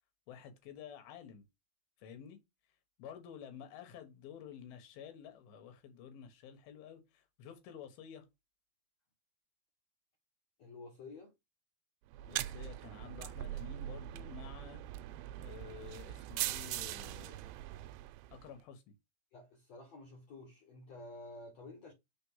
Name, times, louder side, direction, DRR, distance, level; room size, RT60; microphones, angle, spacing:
voice 1, 0.3-1.4 2.0-2.4 3.0-8.3 12.3-14.8 15.4-17.5 18.3-18.8, left 8 dB, 90° left, 3.2 m, -51 dB
voice 2, 10.6-11.3 19.3-21.9, left 2 dB, 55° left, 2.3 m, -51 dB
sound 1, 12.1-18.5, right 14 dB, 85° right, 2.4 m, -41 dB
5.4 x 4.4 x 5.5 m
omnidirectional pair, 4.2 m